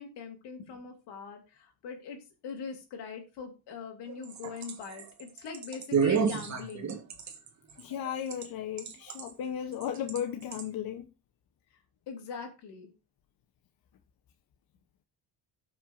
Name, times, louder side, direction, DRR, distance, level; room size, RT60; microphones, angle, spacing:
voice 1, 0.0-2.2 2.4-7.0 12.1-12.9, left 5 dB, 90° left, 2.8 m, -42 dB
sound 1, 4.1-8.5 8.8-9.3 9.8-10.2 10.5-10.6, right 6 dB, 45° right, 1.5 m, -30 dB
voice 2, 7.8-11.1, left 9 dB, 60° left, 1.0 m, -35 dB
17.5 x 6.0 x 2.6 m
cardioid pair, 130°, 39 cm